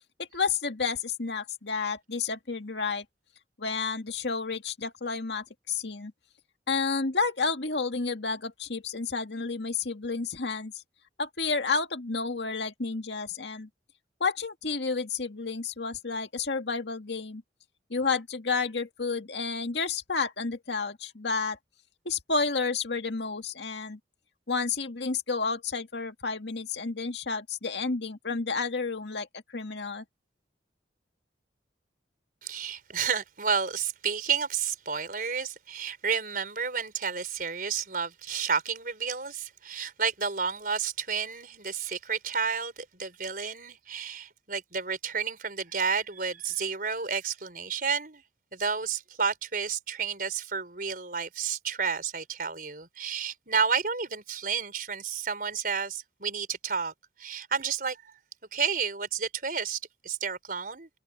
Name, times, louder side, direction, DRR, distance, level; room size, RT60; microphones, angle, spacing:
voice 1, 0.2-3.0 3.6-6.1 6.7-10.8 11.2-13.7 14.2-17.4 17.9-21.6 22.1-24.0 24.5-30.0, left 4 dB, 75° left, 2.0 m, -31 dB
voice 2, 32.4-48.2 48.5-56.9 57.2-58.1 58.5-60.9, right 6 dB, 50° right, 5.0 m, -31 dB
head